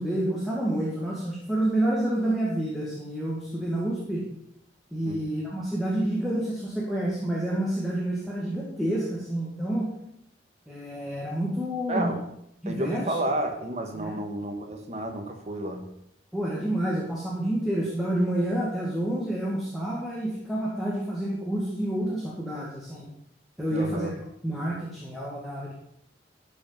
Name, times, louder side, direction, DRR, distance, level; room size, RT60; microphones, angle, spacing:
voice 1, 0.0-4.2 4.9-9.9 10.7-12.1 12.6-13.2 13.9-14.2 16.3-23.1 23.6-24.1 24.4-25.7, right 1 dB, ahead, -6 dB, 2.0 m, -28 dB
voice 2, 12.6-15.8 23.7-24.1, right 1 dB, 35° right, 3 dB, 1.5 m, -31 dB
12.5 x 5.4 x 5.8 m, 0.77 s
head